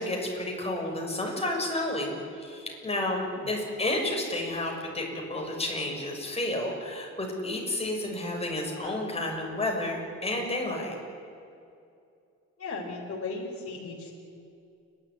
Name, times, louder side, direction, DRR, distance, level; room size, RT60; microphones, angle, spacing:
voice 1, 0.0-10.9, left 1 dB, 20° left, 0 dB, 6.6 m, -31 dB
voice 2, 12.6-14.1, left 3 dB, 50° left, -1 dB, 4.2 m, -36 dB
29.5 x 12.0 x 9.8 m, 2.5 s
cardioid pair, 90°, 30 cm